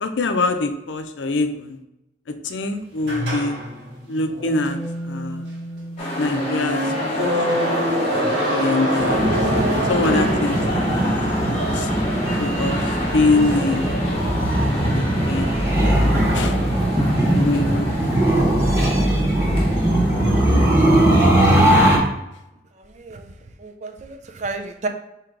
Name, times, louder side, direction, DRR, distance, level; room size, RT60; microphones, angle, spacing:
voice 1, 0.0-1.8 2.4-3.6 4.1-4.8 5.0-5.4 6.2-6.8 7.1-7.8 8.5-9.3 9.9-11.1 11.4-11.9 12.4-12.8 13.1-13.9 14.6-15.5 16.3-16.6 17.3-17.9, left 3 dB, 85° left, 6 dB, 0.5 m, -24 dB
sound 1, 3.0-11.1, equal, 70° right, 1.6 m, -25 dB
sound 2, 6.0-21.5, equal, 35° left, 1.0 m, -28 dB
sound 3, 9.0-22.0, right 1 dB, 15° right, 1.0 m, -20 dB
voice 2, 23.6-24.9, right 3 dB, 40° right, 6 dB, 0.4 m, -31 dB
4.6 x 2.9 x 3.7 m, 0.88 s
head